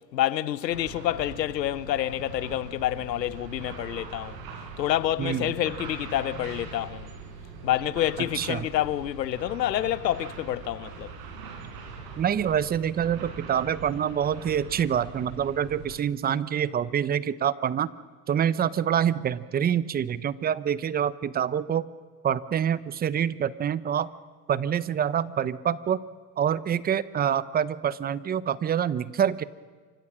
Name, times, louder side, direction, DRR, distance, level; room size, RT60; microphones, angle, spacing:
voice 1, 0.1-4.4 4.8-7.1 7.6-11.1, left 13 dB, 90° left, 1.0 m, -28 dB
sound 1, 0.7-16.0, right 5 dB, 45° right, 7.5 m, -42 dB
voice 2, 5.2-5.6 8.3-8.7 12.2-17.9 18.3-21.8 22.2-24.1 24.5-26.0 26.4-29.4, right 9 dB, 20° right, 0.9 m, -26 dB
29.0 x 25.5 x 6.3 m
hypercardioid pair, 120°, 49 cm